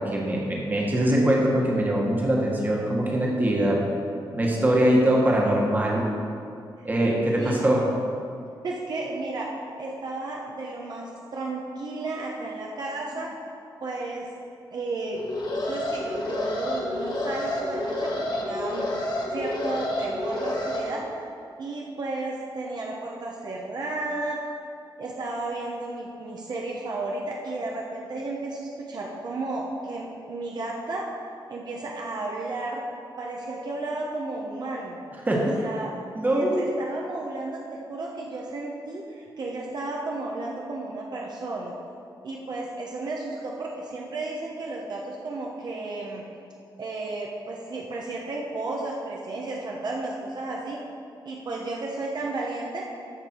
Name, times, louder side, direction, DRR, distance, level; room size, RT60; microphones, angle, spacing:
voice 1, 0.0-3.8 4.3-6.1 6.8-7.8 35.3-35.5 36.1-36.6, right 1 dB, 20° right, -2 dB, 1.5 m, -22 dB
voice 2, 8.6-9.5 9.8-13.3 13.8-14.3 14.7-15.2 15.5-18.9 19.3-21.1 21.6-24.4 25.0-31.1 31.5-32.8 33.2-35.0 35.4-35.9 36.3-41.7 42.2-46.2 46.8-50.8 51.2-52.9, right 2 dB, 55° right, -2 dB, 0.9 m, -33 dB
Alarm, 15.2-20.8, left 1 dB, 55° left, 1.5 m, -29 dB
13.5 x 5.2 x 4.4 m, 2.5 s
wide cardioid pair, 145°, 8 cm